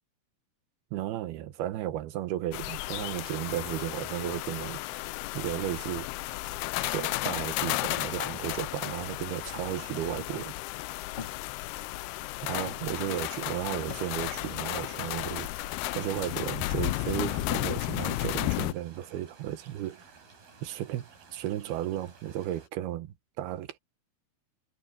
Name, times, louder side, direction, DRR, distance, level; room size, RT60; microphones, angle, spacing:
voice 1, 0.9-5.0 5.3-6.1 6.8-10.5 12.4-15.5 15.9-20.1 20.6-23.8, right 12 dB, 90° right, 3.1 m, -34 dB
sound 1, 2.5-18.7, left 19 dB, 90° left, 2.6 m, -33 dB
sound 2, 13.1-22.7, right 5 dB, 70° right, 7.8 m, -55 dB
sound 3, 13.8-14.0, left 7 dB, 45° left, 2.6 m, -50 dB
omnidirectional pair, 4.4 m